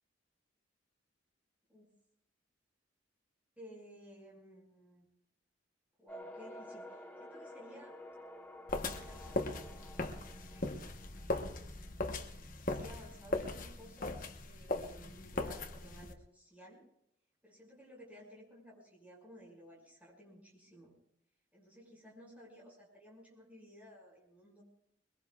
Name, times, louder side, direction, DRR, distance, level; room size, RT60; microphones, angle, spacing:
voice 1, 3.6-5.1 6.0-7.9 8.9-10.1 10.5-11.3 12.6-16.9 17.4-20.9 21.5-24.6, equal, 10° right, -3 dB, 5.9 m, -56 dB
sound 1, 6.1-12.8, equal, 10° left, 1.1 m, -52 dB
sound 2, 8.7-16.1, left 2 dB, 45° left, 1.1 m, -39 dB
23.0 x 22.0 x 2.4 m, 0.77 s
head